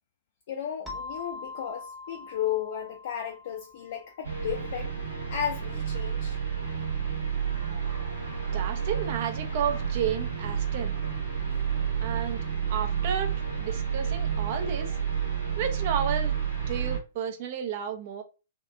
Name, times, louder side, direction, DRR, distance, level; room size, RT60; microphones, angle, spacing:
voice 1, 0.5-4.9 5.3-6.4, left 9 dB, 55° left, 0.4 m, -34 dB
sound 1, 0.9-5.3, left 3 dB, 5° right, 0.8 m, -43 dB
sound 2, 4.2-17.0, right 7 dB, 80° right, 1.0 m, -30 dB
voice 2, 8.5-10.9 12.0-12.4 12.7-14.9 15.6-16.4 16.7-18.2, right 8 dB, 50° right, 0.5 m, -32 dB
2.7 x 2.4 x 2.2 m
figure-of-eight pair, 115°, 0 cm